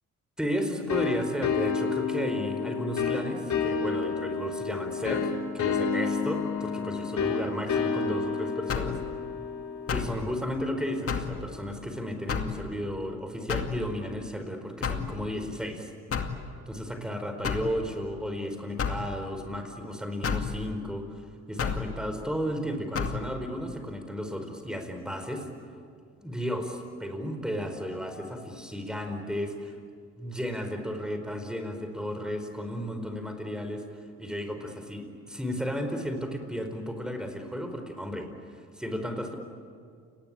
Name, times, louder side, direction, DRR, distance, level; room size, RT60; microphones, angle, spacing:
voice 1, 0.4-9.0 9.9-15.9 16.7-25.5 26.2-29.7 30.2-33.8 34.2-39.3, equal, ahead, 6 dB, 4.8 m, -34 dB
sound 1, 0.9-11.4, left 6 dB, 70° left, 3.5 m, -30 dB
sound 2, 8.7-9.0 9.9-10.2 11.1-11.4 12.3-12.6 13.5-13.8 14.8-15.1 16.1-16.4 17.4-17.7 18.8-19.0 20.2-20.5 21.6-21.9 22.9-23.2, left 6 dB, 50° left, 2.4 m, -30 dB
29.5 x 20.5 x 8.9 m, 2.2 s
cardioid pair, 90°, 30 cm